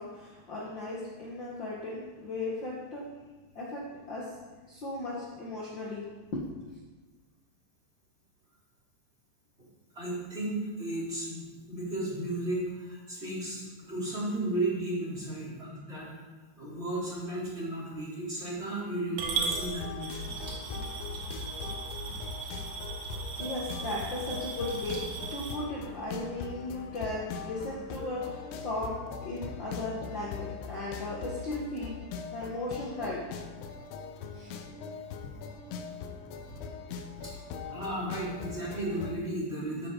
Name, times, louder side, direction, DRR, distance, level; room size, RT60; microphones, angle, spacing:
voice 1, 0.0-3.1 3.5-4.4 4.7-6.5 23.4-32.0 32.3-33.3 34.3-34.6, left 2 dB, 65° left, -5 dB, 1.1 m, -36 dB
voice 2, 9.9-16.1 16.5-20.2 36.2-36.5 37.2-37.3 37.7-39.9, right 1 dB, 15° right, -7 dB, 3.9 m, -34 dB
Coin (dropping) / Glass, 19.2-25.5, right 5 dB, 75° right, 4.0 m, -38 dB
sound 1, 19.3-39.1, left 5 dB, 80° left, 3.3 m, -41 dB
sound 2, 20.2-25.4, right 1 dB, 35° right, 2.4 m, -44 dB
14.0 x 13.5 x 4.1 m, 1.2 s
omnidirectional pair, 5.2 m